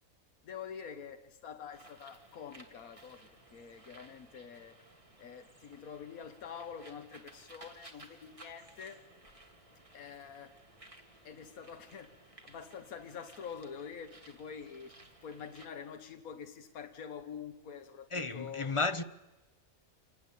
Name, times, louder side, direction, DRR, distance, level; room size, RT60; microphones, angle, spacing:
voice 1, 0.4-4.8 5.2-9.0 9.9-10.5 11.2-14.9 15.2-18.7, left 7 dB, 75° left, 1.6 m, -46 dB
Bird, 1.7-15.7, right 2 dB, 20° right, 2.4 m, -58 dB
voice 2, 18.1-19.0, left 3 dB, 30° left, 0.7 m, -32 dB
27.0 x 19.5 x 8.4 m
omnidirectional pair, 1.5 m